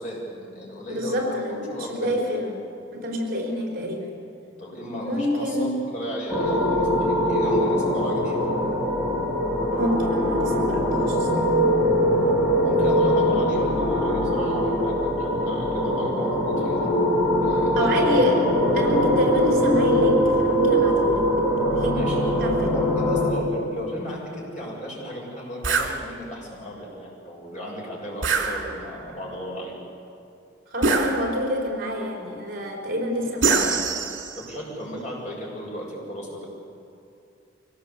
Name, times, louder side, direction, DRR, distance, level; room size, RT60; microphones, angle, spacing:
voice 1, 0.0-2.2 4.6-8.5 12.6-16.8 17.4-18.1 21.8-22.3 22.7-29.7 34.3-36.5, equal, 40° left, -3 dB, 6.9 m, -34 dB
voice 2, 0.9-2.5 2.9-4.1 5.0-5.8 9.7-11.6 17.8-18.4 18.7-21.2 21.7-21.9 22.4-22.8 30.7-33.8, left 1 dB, 50° right, 0 dB, 4.5 m, -27 dB
sound 1, 6.3-23.3, equal, ahead, 5.9 m, -22 dB
sound 2, 25.6-26.0 28.2-29.0 30.8-31.6 33.4-34.5, right 4 dB, 75° right, 2.6 m, -24 dB
25.0 x 18.0 x 8.3 m, 2.6 s
head